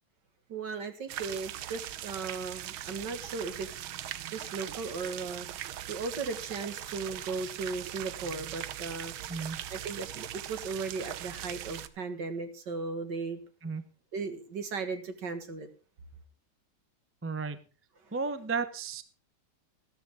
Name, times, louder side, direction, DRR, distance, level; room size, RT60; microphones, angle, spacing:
voice 1, 0.5-3.9 4.3-5.5 5.9-9.1 9.7-13.4 14.1-15.7, right 4 dB, 60° right, 9 dB, 2.4 m, -36 dB
sound 1, 1.1-11.9, right 12 dB, 85° right, 1.7 m, -40 dB
voice 2, 9.3-9.6 13.6-13.8 17.2-17.6 18.1-19.0, right 4 dB, 20° right, 12 dB, 0.3 m, -33 dB
14.0 x 13.0 x 3.6 m, 0.37 s
omnidirectional pair, 2.2 m